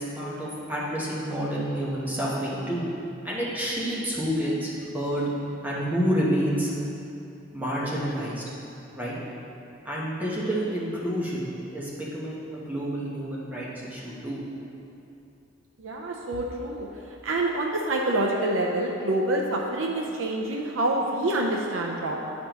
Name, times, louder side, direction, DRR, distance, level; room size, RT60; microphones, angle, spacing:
voice 1, 0.0-2.8 3.2-5.3 5.6-6.7 7.5-8.5 8.9-9.1 9.8-14.4, equal, 10° right, -7 dB, 1.0 m, -29 dB
voice 2, 15.8-16.9 17.2-22.3, right 1 dB, 75° right, 0 dB, 0.5 m, -27 dB
9.4 x 5.1 x 3.0 m, 2.8 s
head